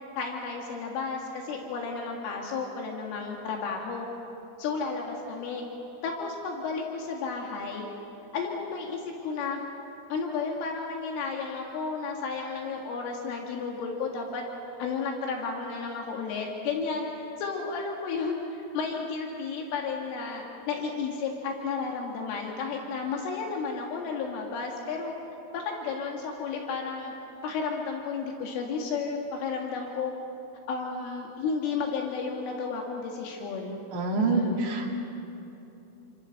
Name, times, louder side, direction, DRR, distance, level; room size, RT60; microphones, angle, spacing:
voice 1, 0.2-4.1 4.6-5.6 6.0-7.9 8.3-9.6 10.1-14.4 14.8-25.1 25.5-27.2 27.4-30.1 30.7-33.8 34.1-34.6, left 5 dB, 80° left, 0 dB, 4.4 m, -32 dB
voice 2, 33.9-34.9, right 3 dB, 70° right, -1 dB, 4.9 m, -26 dB
28.5 x 26.0 x 6.6 m, 2.9 s
omnidirectional pair, 5.7 m